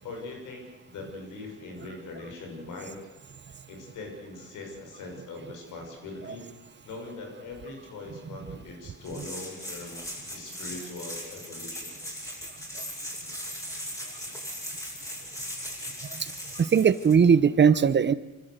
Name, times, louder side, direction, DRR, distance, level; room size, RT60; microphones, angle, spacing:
voice 1, 0.0-3.0 3.7-6.5 6.8-11.9, left 3 dB, 85° left, 2 dB, 6.4 m, -41 dB
sound 1, 9.0-17.1, equal, 10° left, 7.0 m, -38 dB
voice 2, 16.6-18.1, right 7 dB, 35° right, 16 dB, 0.9 m, -19 dB
25.5 x 13.5 x 8.2 m, 1.1 s
cardioid pair, 90°, 30 cm